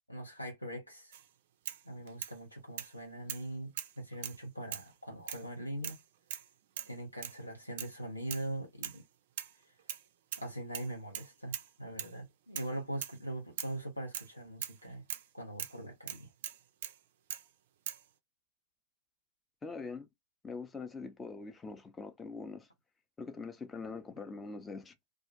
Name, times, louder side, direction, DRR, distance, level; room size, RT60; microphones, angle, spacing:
voice 1, 0.1-1.1 1.8-6.0 6.9-9.0 10.4-15.0 15.3-16.3, right 1 dB, 85° left, 0.7 m, -42 dB
sound 1, 1.1-1.3 1.7-2.4 2.8-2.9 3.3-3.5 3.8-4.4 4.7-4.9 5.3-5.5 5.8-6.0 6.3-6.5 6.8-6.9 7.2-7.4 7.8-8.0 8.3-8.5 8.8-9.0 9.4-10.0 10.3-10.5 10.7-11.7 12.0-12.1 12.6-12.8 13.0-13.2 13.6-13.8 14.1-14.3 14.6-14.8 15.1-15.3 15.6-15.8 16.1-17.0 17.3-17.5 17.9-18.0, right 11 dB, 55° right, 0.3 m, -41 dB
voice 2, 19.6-20.1 20.4-22.7 23.2-24.9, left 4 dB, 15° left, 0.5 m, -43 dB
2.3 x 2.1 x 2.6 m
figure-of-eight pair, 90°, 0 cm